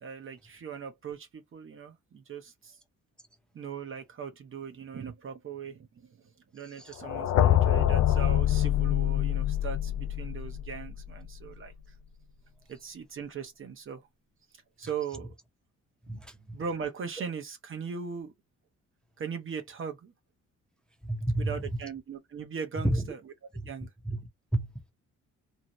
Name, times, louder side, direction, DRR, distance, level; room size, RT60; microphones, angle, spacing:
voice 1, 0.0-2.8 3.5-6.2 6.5-11.7 12.7-14.0 14.8-15.3 16.1-16.2 16.5-18.3 19.2-20.1 21.4-23.3 23.7-23.9, right 6 dB, 45° right, 0.7 m, -39 dB
sound 1, 7.0-11.0, left 12 dB, 60° left, 0.5 m, -25 dB
voice 2, 16.1-16.6 21.0-21.6 22.8-23.1 23.6-23.7 24.0-24.9, right 1 dB, 5° left, 0.7 m, -31 dB
2.7 x 2.1 x 2.9 m
cardioid pair, 90°, 30 cm